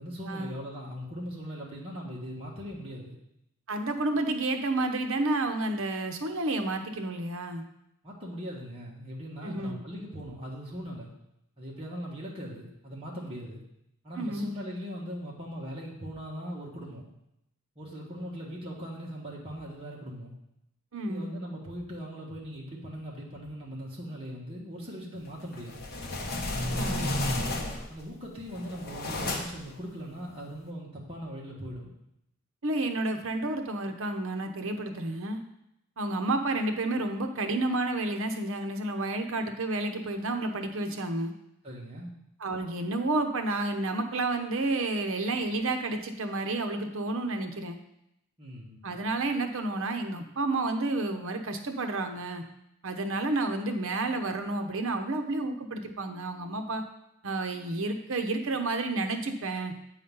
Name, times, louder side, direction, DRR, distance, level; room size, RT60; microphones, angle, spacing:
voice 1, 0.0-3.1 8.0-11.1 11.6-13.6 14.0-17.1 17.7-20.3 21.1-25.8 27.9-31.9 41.6-42.1 48.4-48.8, equal, 25° right, -4 dB, 1.5 m, -40 dB
voice 2, 3.7-7.6 9.4-9.8 14.1-14.5 20.9-21.3 26.8-27.2 32.6-35.4 36.0-41.3 42.4-47.8 48.8-52.4 52.8-56.8 57.2-59.7, right 2 dB, 65° right, 6 dB, 0.9 m, -30 dB
sound 1, 25.5-28.0 28.5-29.7, left 1 dB, 45° left, 1.0 m, -32 dB
8.6 x 4.1 x 5.4 m, 0.80 s
head